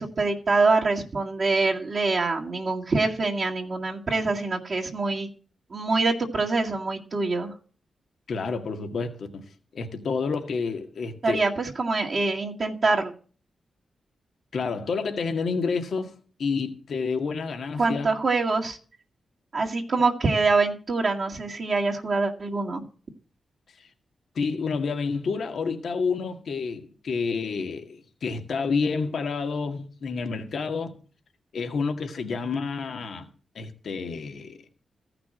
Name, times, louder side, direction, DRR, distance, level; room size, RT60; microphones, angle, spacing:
voice 1, 0.0-5.3 5.7-7.5 11.2-13.1 17.8-18.8 19.5-22.8, right 3 dB, 55° right, 2.0 m, -25 dB
voice 2, 8.3-9.4 9.7-11.4 14.5-18.1 23.8-23.9 24.4-31.0 31.5-33.3 33.6-34.6, left 4 dB, 70° left, 1.8 m, -29 dB
14.0 x 6.0 x 7.6 m
cardioid pair, 55°, 0 cm